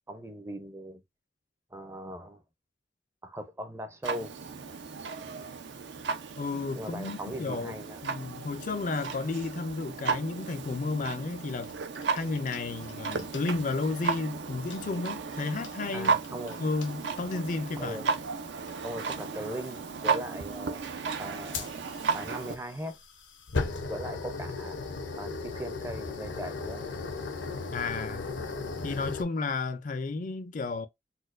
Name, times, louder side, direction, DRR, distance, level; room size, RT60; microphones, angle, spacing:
voice 1, 0.1-1.0 1.7-2.4 3.2-4.3 6.8-8.0 15.9-16.6 17.8-18.1 18.8-20.8 21.2-21.7 22.1-23.0 23.9-24.8 25.2-26.8, equal, 15° right, 0.5 m, -39 dB
Clock, 4.0-22.6, right 5 dB, 80° right, 0.5 m, -34 dB
voice 2, 6.4-7.7 8.0-11.7 12.1-16.2 16.6-18.0 27.7-28.4 28.8-30.9, left 3 dB, 45° left, 0.4 m, -32 dB
sound 1, 11.3-12.9 13.2-13.4 14.6-15.1 15.6-15.8 16.0-16.5 16.8-16.9 17.2-17.6 18.7-18.8 19.5-19.7 21.5-29.2, left 3 dB, 90° left, 0.8 m, -37 dB
4.2 x 2.2 x 2.4 m
head